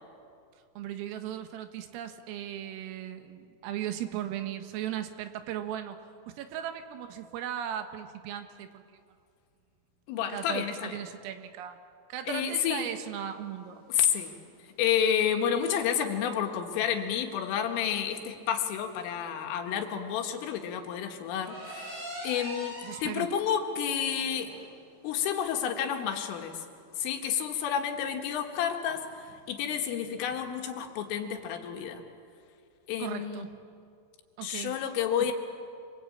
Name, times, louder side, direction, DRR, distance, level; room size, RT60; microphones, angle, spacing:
voice 1, 0.8-8.8 10.3-11.8 12.1-13.8 22.8-23.3 33.0-33.6 34.4-34.8, right 10 dB, 90° right, 7 dB, 4.1 m, -37 dB
voice 2, 10.1-11.0 12.3-12.9 13.9-14.4 14.8-21.9 22.2-24.5 25.0-26.7 27.0-32.0 32.9-33.5 34.4-35.3, left 8 dB, 80° left, 4 dB, 4.3 m, -30 dB
sound 1, 12.6-31.2, equal, 50° right, 9.7 m, -48 dB
27.5 x 24.0 x 8.8 m, 2.4 s
omnidirectional pair, 5.9 m